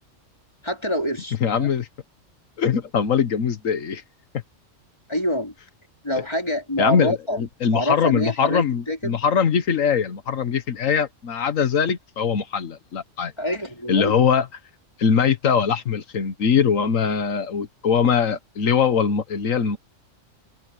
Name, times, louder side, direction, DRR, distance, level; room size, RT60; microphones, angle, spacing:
voice 1, 0.6-1.7 5.1-5.5 6.0-7.4 7.7-9.2 13.4-14.1, equal, 20° left, 3.7 m, -26 dB
voice 2, 1.4-1.9 2.6-4.0 6.8-13.3 13.9-14.5 15.0-19.8, left 7 dB, 90° left, 1.6 m, -22 dB
omnidirectional pair, 1.3 m